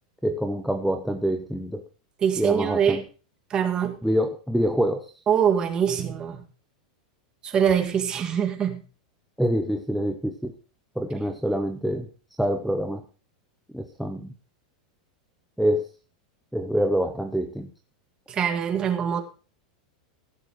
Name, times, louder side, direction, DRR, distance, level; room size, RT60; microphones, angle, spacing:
voice 1, 0.2-1.8 2.4-3.0 4.0-5.1 9.4-10.5 11.0-12.1 12.4-13.0 13.7-14.3 15.6-15.9 16.5-17.7, equal, ahead, 7 dB, 0.7 m, -26 dB
voice 2, 2.2-3.0 3.5-4.0 5.3-6.4 7.4-8.8 18.3-19.2, right 8 dB, 20° right, 5 dB, 1.7 m, -23 dB
15.5 x 7.0 x 4.9 m, 0.36 s
supercardioid pair, 170°, 4 cm